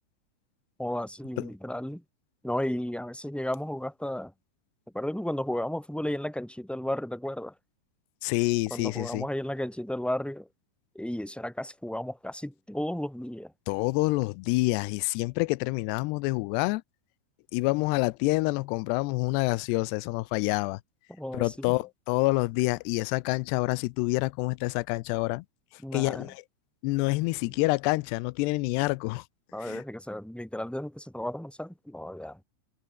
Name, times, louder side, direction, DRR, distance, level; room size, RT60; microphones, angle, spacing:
voice 1, 0.8-2.0 2.4-4.3 4.9-7.5 8.7-10.5 10.9-13.5 21.1-21.8 25.8-26.3 27.4-27.5 29.5-32.4, left 1 dB, ahead, 3.8 m, -33 dB
voice 2, 8.2-9.3 13.7-16.8 17.5-20.8 21.3-25.4 25.9-26.4 26.8-29.2 29.6-29.8, left 23 dB, 85° left, 2.7 m, -27 dB
omnidirectional pair, 4.7 m